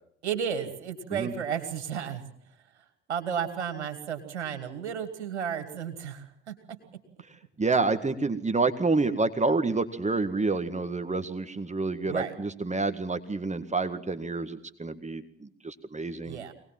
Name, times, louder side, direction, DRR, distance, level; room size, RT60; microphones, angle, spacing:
voice 1, 0.2-2.2 3.1-6.5 12.1-12.3 16.2-16.5, right 8 dB, 85° right, 7 dB, 2.5 m, -33 dB
voice 2, 7.6-16.4, right 3 dB, 20° right, 10 dB, 1.9 m, -28 dB
23.5 x 19.5 x 7.6 m, 0.63 s
hypercardioid pair, 55°, 33 cm